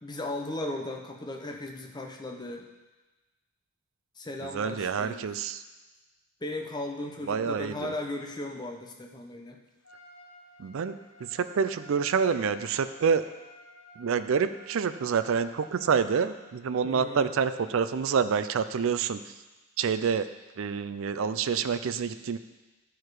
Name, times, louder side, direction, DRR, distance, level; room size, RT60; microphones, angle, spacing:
voice 1, 0.0-2.7 4.2-5.2 6.4-9.6 16.8-17.3, left 2 dB, 20° left, 1 dB, 0.7 m, -36 dB
voice 2, 4.4-5.6 7.3-7.9 10.6-13.3 14.0-19.3 19.8-20.3 20.6-22.4, right 6 dB, 60° right, 12 dB, 0.4 m, -27 dB
Trumpet, 9.8-16.4, equal, 65° left, 1.3 m, -53 dB
11.0 x 4.6 x 4.8 m, 1.2 s
head